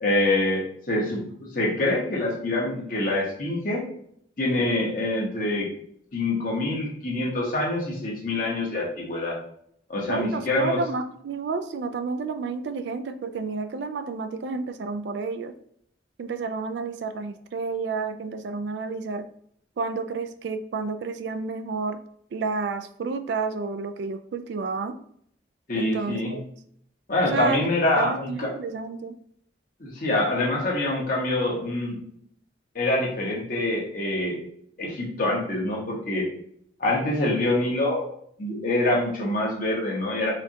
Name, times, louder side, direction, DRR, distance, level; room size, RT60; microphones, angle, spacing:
voice 1, 0.0-1.2 1.5-3.8 4.4-5.7 6.1-9.4 9.9-10.8 25.7-26.3 27.1-28.5 29.8-32.0 32.7-34.4 34.8-36.3 36.8-38.1 38.4-40.3, left 2 dB, 50° left, -3 dB, 1.1 m, -25 dB
voice 2, 10.1-15.5 16.2-19.3 19.8-22.0 22.3-25.0 25.7-26.4 27.3-27.6 28.0-29.1, right 4 dB, 70° right, 9 dB, 0.3 m, -30 dB
4.3 x 2.4 x 2.7 m, 0.67 s
head